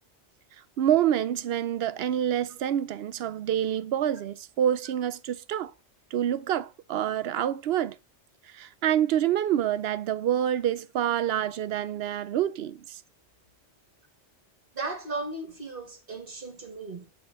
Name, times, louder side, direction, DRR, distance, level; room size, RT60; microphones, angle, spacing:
voice 1, 0.8-5.7 6.1-8.0 8.5-13.0, right 10 dB, 65° right, 0.7 m, -27 dB
voice 2, 14.7-17.1, right 3 dB, 50° right, 2.1 m, -36 dB
8.6 x 4.3 x 4.2 m
omnidirectional pair, 1.2 m